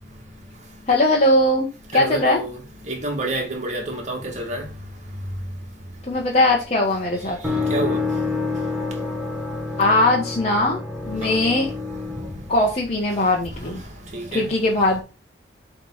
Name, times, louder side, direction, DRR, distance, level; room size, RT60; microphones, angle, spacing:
voice 1, 0.9-1.7 1.9-2.4 6.1-7.4 9.8-10.8 11.1-11.7 12.5-13.8 14.3-15.0, left 2 dB, 35° left, 1.3 m, -19 dB
voice 2, 1.9-2.6 2.9-4.7 7.7-8.0 11.2-11.4 14.1-14.5, right 2 dB, 40° right, 2.0 m, -28 dB
sound 1, 7.4-13.3, left 3 dB, 5° right, 1.4 m, -28 dB
7.4 x 3.5 x 5.6 m
head